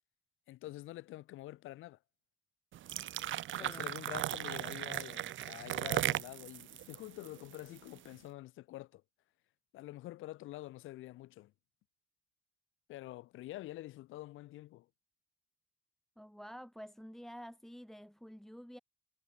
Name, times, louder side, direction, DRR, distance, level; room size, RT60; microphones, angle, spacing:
voice 1, 0.5-2.0 3.5-9.0 9.7-11.5 12.9-14.9, left 16 dB, 90° left, 2.3 m, -47 dB
sound 1, 2.7-8.0, right 12 dB, 75° right, 2.4 m, -37 dB
voice 2, 3.5-3.9 16.2-18.8, equal, ahead, 2.2 m, -49 dB
cardioid pair, 90°, 20 cm